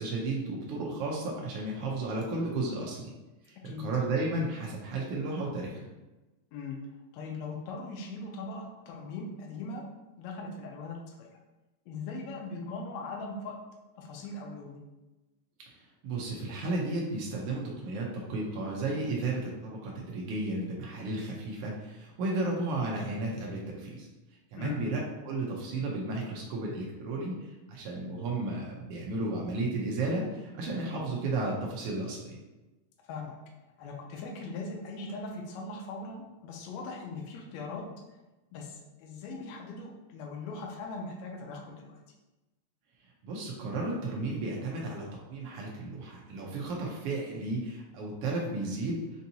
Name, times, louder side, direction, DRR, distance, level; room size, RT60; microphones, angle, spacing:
voice 1, 0.0-3.1 3.4-5.8 16.0-24.1 24.5-32.4 43.2-49.0, right 2 dB, 85° right, -2 dB, 1.2 m, -33 dB
voice 2, 7.1-9.8 10.2-11.3 11.9-13.5 14.0-14.8 24.6-24.8 33.1-33.4 33.8-37.8 38.5-42.0, left 3 dB, 75° left, 0 dB, 1.7 m, -40 dB
5.3 x 2.7 x 2.7 m, 1.1 s
omnidirectional pair, 3.4 m